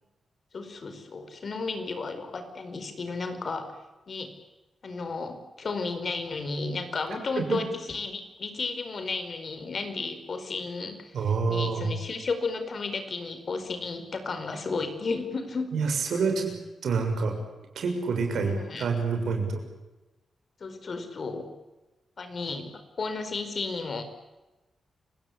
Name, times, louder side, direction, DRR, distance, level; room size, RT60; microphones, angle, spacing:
voice 1, 0.5-3.7 4.1-4.3 4.8-11.1 11.5-15.7 18.3-18.8 20.6-21.5 22.2-24.0, left 4 dB, 55° left, 9 dB, 4.9 m, -33 dB
voice 2, 11.1-11.9 15.7-16.5 16.8-17.3 17.7-19.6, right 5 dB, 75° right, 4 dB, 6.7 m, -27 dB
29.5 x 18.0 x 8.5 m, 1.1 s
cardioid pair, 60°, 0 cm